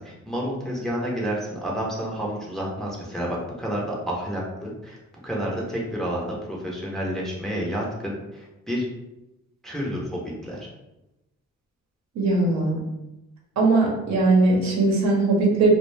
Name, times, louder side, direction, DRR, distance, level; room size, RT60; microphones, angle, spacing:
voice 1, 0.0-5.0 5.2-8.9 9.6-10.7, equal, ahead, -4 dB, 0.6 m, -30 dB
voice 2, 12.2-12.8 13.6-15.7, right 3 dB, 65° right, -1 dB, 0.8 m, -20 dB
2.2 x 2.1 x 3.1 m, 0.95 s
cardioid pair, 90°, 30 cm